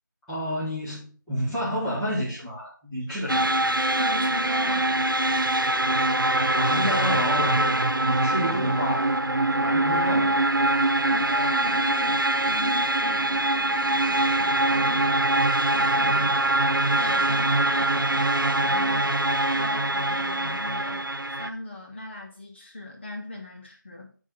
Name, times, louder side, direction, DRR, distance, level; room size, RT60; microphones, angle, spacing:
voice 1, 0.3-3.7 6.5-9.2 9.6-10.4, equal, 5° left, -15 dB, 1.7 m, -30 dB
sound 1, 3.3-21.5, right 1 dB, 90° right, 1.0 m, -23 dB
voice 2, 4.0-5.1 11.1-15.2 15.7-16.6 16.9-19.1 19.5-24.2, left 1 dB, 35° left, -2 dB, 2.1 m, -38 dB
11.0 x 4.6 x 4.2 m, 0.41 s
figure-of-eight pair, 170°, 11 cm